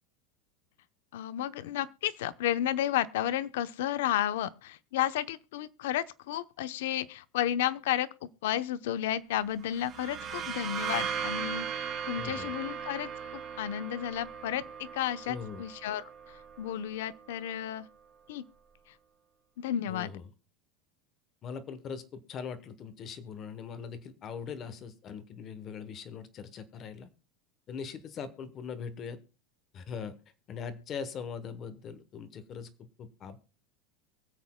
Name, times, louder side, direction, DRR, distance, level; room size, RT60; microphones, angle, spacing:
voice 1, 1.1-17.9 18.3-18.4 19.6-20.1, left 11 dB, 75° left, 0.7 m, -32 dB
sound 1, 9.6-17.2, right 7 dB, 25° right, 2.0 m, -38 dB
voice 2, 12.1-12.5 15.3-15.6 19.9-20.2 21.4-27.1 27.7-29.2 29.7-30.2 30.5-33.4, left 6 dB, 25° left, 0.9 m, -41 dB
23.5 x 8.0 x 2.2 m
supercardioid pair, 175°, 0 cm